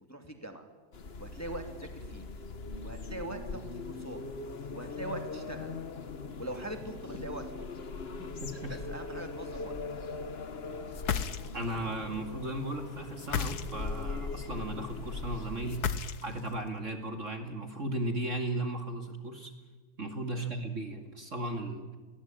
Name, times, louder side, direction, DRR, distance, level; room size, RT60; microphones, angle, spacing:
voice 1, 0.1-0.7 1.2-2.3 2.8-4.2 4.7-5.7 6.4-7.6 8.7-9.8 20.3-20.5, right 1 dB, 10° left, 5 dB, 2.4 m, -42 dB
sound 1, 0.9-16.0, left 4 dB, 35° left, 1.3 m, -40 dB
voice 2, 8.4-8.8 11.5-15.9 16.2-19.5 20.0-22.0, right 1 dB, 40° right, 5 dB, 2.5 m, -36 dB
sound 2, 10.9-11.8 13.2-14.0 15.7-16.5, left 7 dB, 55° left, 1.5 m, -33 dB
29.5 x 22.0 x 9.0 m, 1.4 s
omnidirectional pair, 2.2 m